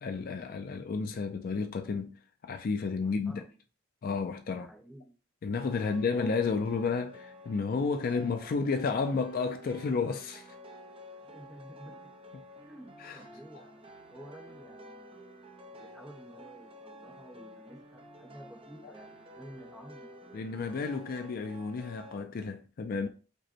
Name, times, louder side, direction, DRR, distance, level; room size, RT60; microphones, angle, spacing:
voice 1, 0.0-2.2 2.4-3.4 4.0-4.7 5.4-10.5 13.0-13.2 20.3-23.1, left 4 dB, 50° left, 0.4 m, -32 dB
voice 2, 3.0-3.6 4.5-5.1 5.7-6.3 11.2-11.9 12.7-15.2 15.7-20.4, equal, 5° right, 1.0 m, -52 dB
sound 1, 5.5-22.2, equal, 30° right, 0.6 m, -51 dB
5.0 x 2.1 x 4.3 m
head